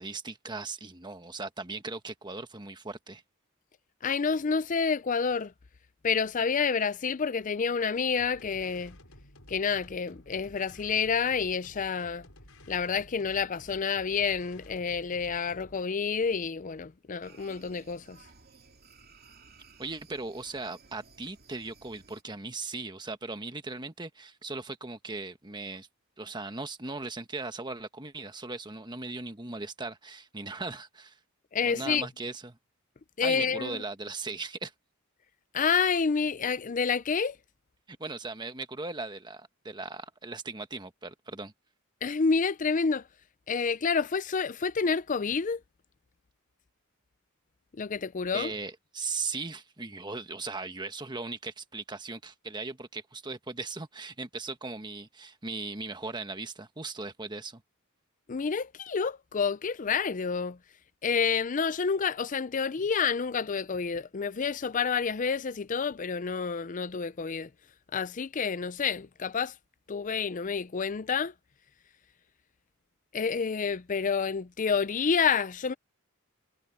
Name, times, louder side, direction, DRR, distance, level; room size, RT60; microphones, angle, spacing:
voice 1, 0.0-3.2 19.8-25.9 26.2-31.2 31.6-32.6 33.2-34.7 37.9-41.5 48.3-57.6, right 3 dB, 20° right, 1.3 m, -38 dB
voice 2, 4.0-5.5 6.0-9.0 9.5-12.3 12.7-18.2 31.5-32.1 33.2-33.8 35.5-37.4 42.0-43.0 43.5-45.6 47.7-48.5 58.3-60.6 61.0-67.5 67.9-69.5 69.9-71.3 73.1-75.7, left 5 dB, 35° left, 0.5 m, -29 dB
sound 1, 8.2-15.9, left 1 dB, 75° left, 6.8 m, -53 dB
sound 2, 17.2-22.2, right 4 dB, 45° right, 2.9 m, -57 dB
head